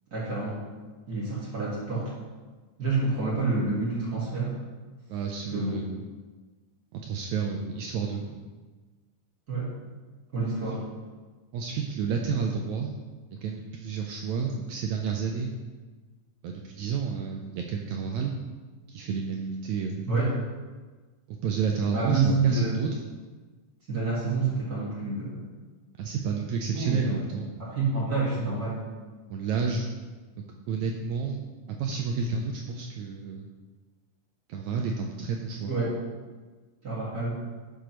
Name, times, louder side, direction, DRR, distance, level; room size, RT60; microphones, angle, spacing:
voice 1, 0.1-0.6 1.1-2.1 2.8-4.5 5.5-5.7 9.5-9.7 10.3-10.8 20.1-20.3 21.9-22.7 23.9-25.5 26.7-27.2 27.6-28.8 35.7-35.9 36.8-37.4, right 3 dB, 35° right, -6 dB, 1.7 m, -28 dB
voice 2, 5.1-6.0 6.9-8.5 11.5-13.0 13.3-15.5 16.4-18.3 18.9-20.1 21.3-23.0 26.0-27.6 29.3-29.9 30.7-31.4 31.8-33.5 34.5-35.8, right 5 dB, 85° right, 1 dB, 1.7 m, -30 dB
11.0 x 6.9 x 3.0 m, 1.3 s
omnidirectional pair, 3.9 m